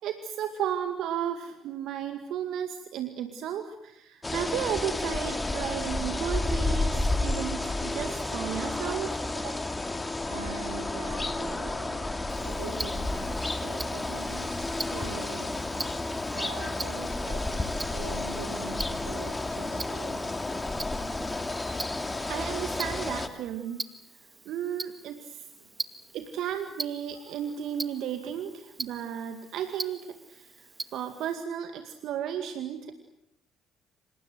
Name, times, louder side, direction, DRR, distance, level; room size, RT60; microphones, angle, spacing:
voice 1, 0.0-9.8 22.1-23.9 24.5-25.5 26.1-33.0, right 9 dB, 65° right, 7 dB, 2.1 m, -34 dB
sound 1, 4.2-23.3, left 2 dB, 20° left, 3.0 m, -31 dB
voice 2, 10.3-15.7 16.3-20.3 25.6-25.7, right 4 dB, 90° right, 3 dB, 5.5 m, -43 dB
Tick-tock, 12.3-31.3, right 3 dB, 20° right, 2.2 m, -43 dB
27.5 x 27.0 x 8.0 m, 0.77 s
hypercardioid pair, 55°, 0 cm